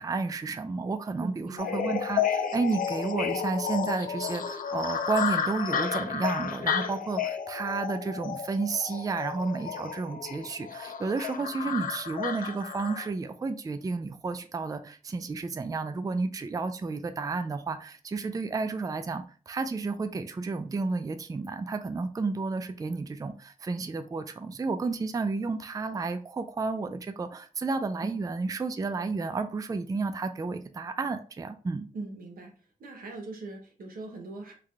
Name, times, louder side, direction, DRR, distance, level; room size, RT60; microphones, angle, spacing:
voice 1, 0.0-31.9, right 4 dB, 25° right, 9 dB, 0.3 m, -31 dB
voice 2, 1.2-1.8 28.0-28.2 31.9-32.5 32.8-34.5, right 3 dB, 90° right, 2 dB, 0.8 m, -40 dB
sound 1, 1.6-13.1, left 7 dB, 75° left, 0.4 m, -32 dB
3.3 x 2.1 x 3.5 m, 0.39 s
cardioid pair, 65°, 14 cm